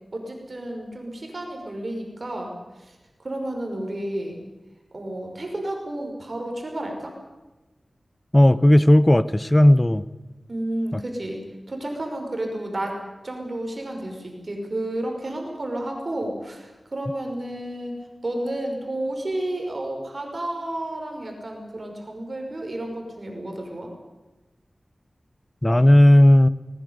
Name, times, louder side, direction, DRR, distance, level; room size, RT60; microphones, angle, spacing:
voice 1, 0.1-2.5 3.2-4.4 4.9-7.1 10.5-11.4 11.7-13.0 13.2-17.9 18.2-23.9, right 1 dB, 50° right, 2 dB, 5.4 m, -31 dB
voice 2, 8.3-10.0 10.9-11.0 25.6-26.5, left 1 dB, 20° left, 15 dB, 0.8 m, -14 dB
20.5 x 19.5 x 9.6 m, 1.1 s
wide cardioid pair, 85°, 0 cm